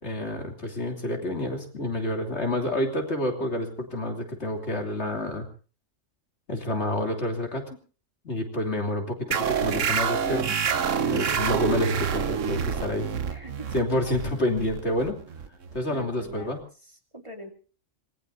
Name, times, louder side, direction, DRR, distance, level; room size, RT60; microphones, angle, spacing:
voice 1, 0.0-5.5 6.5-7.6 8.2-10.6 11.0-13.1 13.7-15.2 15.7-16.6, left 1 dB, 60° left, 3 dB, 3.4 m, -28 dB
sound 1, 9.3-16.4, right 7 dB, 80° right, 1.4 m, -27 dB
voice 2, 11.4-11.8 13.3-13.7 15.9-16.5 16.8-17.5, right 1 dB, 25° right, 3 dB, 2.7 m, -42 dB
26.5 x 20.0 x 2.7 m, 0.37 s
omnidirectional pair, 1.3 m